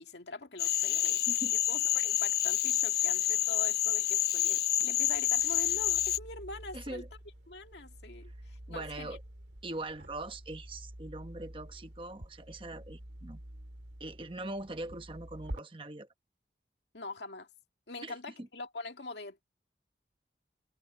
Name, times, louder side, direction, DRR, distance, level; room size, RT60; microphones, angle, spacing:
voice 1, 0.0-1.2 1.5-7.0 7.5-9.2 16.9-17.5 17.9-19.4, left 3 dB, 80° left, 2.0 m, -44 dB
Cricket / Frog, 0.6-6.2, left 12 dB, 65° left, 0.8 m, -28 dB
voice 2, 1.0-1.5 6.7-7.1 8.7-9.2 9.6-13.4 14.0-16.1 18.0-18.5, right 2 dB, 30° right, 1.1 m, -42 dB
sound 1, 5.0-15.6, right 1 dB, 80° right, 2.3 m, -48 dB
head